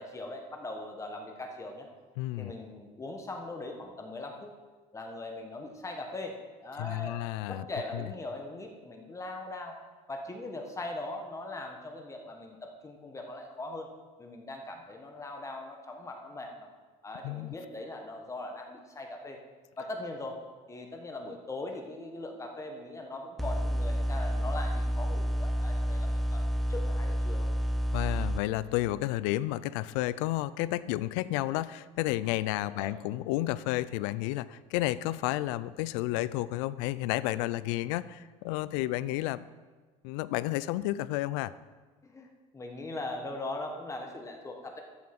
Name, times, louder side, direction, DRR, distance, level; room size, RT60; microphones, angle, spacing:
voice 1, 0.0-1.9 2.4-4.5 4.9-7.2 7.5-9.8 10.1-13.9 14.2-16.7 17.0-19.4 19.8-20.4 20.7-27.5 32.7-32.9 42.0-44.8, left 2 dB, 20° left, 3 dB, 1.3 m, -40 dB
voice 2, 2.2-2.5 6.8-7.7 7.9-8.0 17.2-17.5 27.9-39.4 40.0-41.5, left 16 dB, 90° left, 17 dB, 0.4 m, -31 dB
sound 1, 23.4-28.4, equal, ahead, 0.7 m, -29 dB
13.0 x 5.6 x 5.9 m, 1.4 s
cardioid pair, 115°, 15 cm